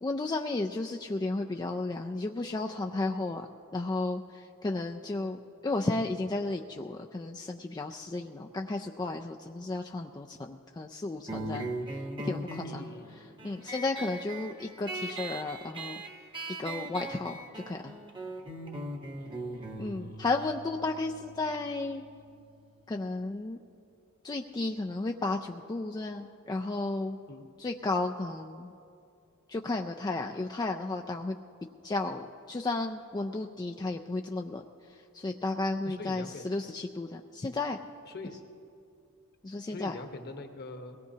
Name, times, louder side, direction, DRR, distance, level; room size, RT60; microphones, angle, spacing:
voice 1, 0.0-16.0 16.6-17.9 19.8-22.0 22.9-23.6 24.2-27.2 27.6-28.7 29.5-31.4 31.8-37.8 39.4-40.0, left 2 dB, 20° left, 2 dB, 0.4 m, -33 dB
sound 1, 11.3-22.4, right 2 dB, 25° right, 1.0 m, -40 dB
voice 2, 12.6-13.1 19.2-20.5 27.3-27.5 35.8-36.4 38.0-38.4 39.7-41.0, left 2 dB, 50° left, 5 dB, 1.1 m, -44 dB
22.0 x 18.0 x 2.8 m, 2.6 s
head